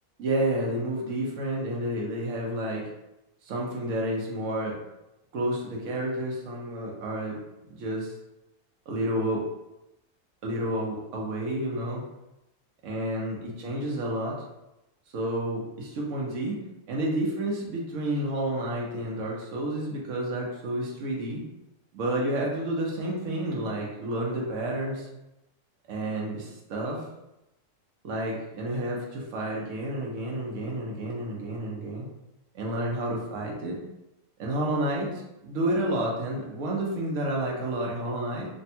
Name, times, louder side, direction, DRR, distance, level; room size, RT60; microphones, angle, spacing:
voice 1, 0.2-2.8 3.5-4.7 5.3-7.3 7.7-8.1 8.9-9.4 10.4-12.0 12.8-14.4 15.1-16.6 16.9-21.4 21.9-25.1 25.9-27.0 28.0-32.1 32.5-33.8 34.4-38.5, right 1 dB, 65° right, -2 dB, 1.0 m, -30 dB
3.3 x 2.1 x 2.7 m, 0.91 s
omnidirectional pair, 1.5 m